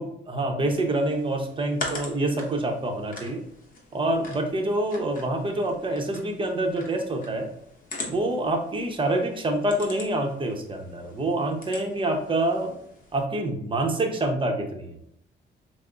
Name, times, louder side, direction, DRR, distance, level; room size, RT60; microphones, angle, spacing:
voice 1, 0.3-3.4 3.9-7.5 8.1-12.7 13.1-15.0, right 1 dB, 25° right, 3 dB, 0.7 m, -26 dB
sound 1, 0.7-13.2, left 2 dB, 45° left, 0.9 m, -42 dB
5.1 x 2.0 x 2.4 m, 0.74 s
cardioid pair, 90°, 20 cm